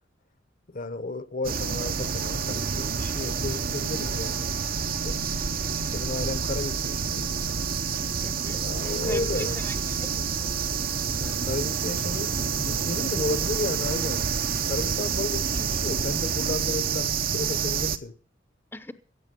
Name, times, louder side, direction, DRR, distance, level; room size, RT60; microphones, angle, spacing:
voice 1, 0.7-4.5 5.0-5.2 5.9-7.3 8.5-9.6 11.2-14.2 14.6-18.1, left 2 dB, 45° left, 0.9 m, -33 dB
sound 1, 1.4-18.0, right 6 dB, 50° right, 0.8 m, -28 dB
Wind instrument woodwind instrument, 4.0-15.3, left 5 dB, 90° left, 2.6 m, -50 dB
voice 2, 8.2-8.6 9.0-10.5 18.7-18.9, left 1 dB, 10° left, 0.7 m, -39 dB
16.0 x 8.1 x 6.8 m
head